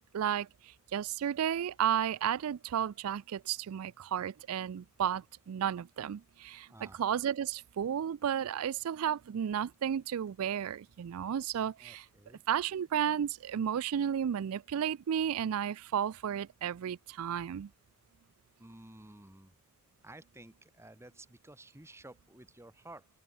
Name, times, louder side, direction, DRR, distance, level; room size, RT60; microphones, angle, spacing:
voice 1, 0.1-12.1 12.5-17.7, right 9 dB, 80° right, 0.4 m, -33 dB
voice 2, 6.7-7.0 11.8-12.4 18.6-19.5 20.0-23.1, right 1 dB, 10° right, 1.3 m, -53 dB
open air
head